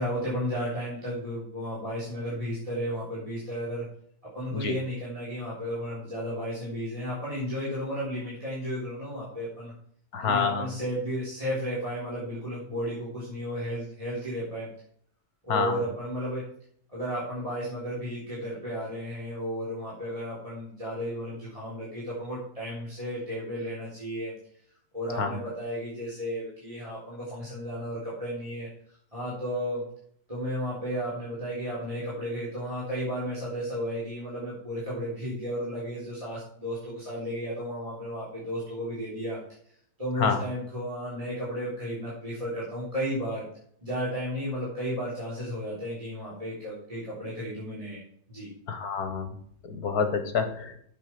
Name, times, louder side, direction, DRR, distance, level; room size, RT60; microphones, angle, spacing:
voice 1, 0.0-3.8 4.3-9.7 10.2-14.7 15.4-16.4 16.9-24.3 24.9-28.7 29.1-29.8 30.3-39.4 40.0-43.4 43.8-48.0 48.3-48.5, equal, 20° right, -8 dB, 3.9 m, -33 dB
voice 2, 10.1-10.7 15.5-15.8 25.2-25.4 40.2-40.4 48.7-49.3 49.7-50.7, left 5 dB, 70° left, 8 dB, 1.8 m, -27 dB
8.4 x 7.4 x 6.0 m, 0.64 s
omnidirectional pair, 1.7 m